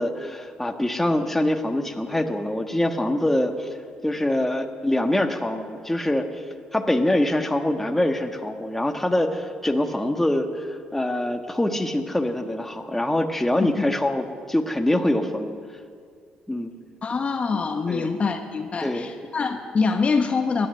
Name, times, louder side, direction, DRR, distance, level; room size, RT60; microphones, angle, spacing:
voice 1, 0.0-3.7 4.0-6.4 6.7-15.5 16.5-16.7 17.9-18.1 18.8-19.1, left 1 dB, 10° left, 5 dB, 1.4 m, -24 dB
voice 2, 17.0-20.7, left 4 dB, 40° left, 6 dB, 1.0 m, -25 dB
16.0 x 11.0 x 6.7 m, 2.2 s
supercardioid pair, 60°, 3 cm